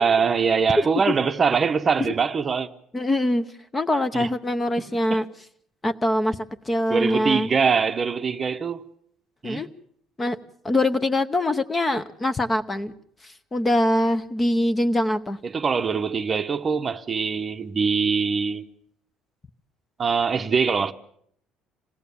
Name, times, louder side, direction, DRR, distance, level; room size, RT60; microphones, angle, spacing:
voice 1, 0.0-2.7 4.1-4.3 5.1-5.2 6.9-8.8 9.4-9.7 15.4-18.7 20.0-20.9, right 5 dB, 25° right, 0.9 m, -23 dB
voice 2, 2.9-3.4 3.7-5.3 5.8-7.5 9.4-9.7 10.2-10.4 10.6-12.9 13.2-15.4, left 1 dB, 15° left, 0.8 m, -23 dB
26.5 x 18.0 x 7.0 m
cardioid pair, 155°, 0 cm